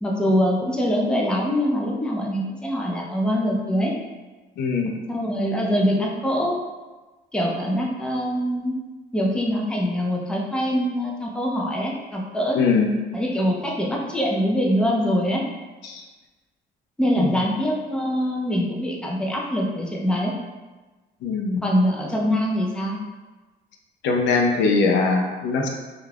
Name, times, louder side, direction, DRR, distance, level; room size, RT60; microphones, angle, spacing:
voice 1, 0.0-3.9 5.1-6.5 7.3-8.8 9.1-12.6 13.1-15.4 17.0-20.3 21.6-23.0, equal, 5° left, -2 dB, 0.4 m, -23 dB
voice 2, 4.6-4.9 12.6-12.9 15.8-16.0 17.2-17.3 21.2-21.7 24.0-25.7, left 4 dB, 85° left, 1 dB, 0.5 m, -21 dB
2.3 x 2.3 x 3.2 m, 1.2 s
cardioid pair, 120°, 18 cm